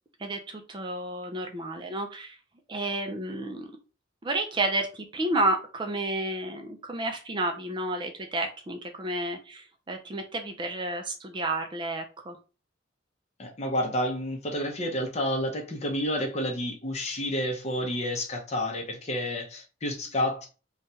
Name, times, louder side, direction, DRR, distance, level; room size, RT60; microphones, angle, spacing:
voice 1, 0.2-2.4 2.7-3.7 4.2-12.4, right 2 dB, 25° right, 0.4 m, -31 dB
voice 2, 13.4-20.5, left 1 dB, 35° left, 0.6 m, -30 dB
3.1 x 2.3 x 2.7 m
head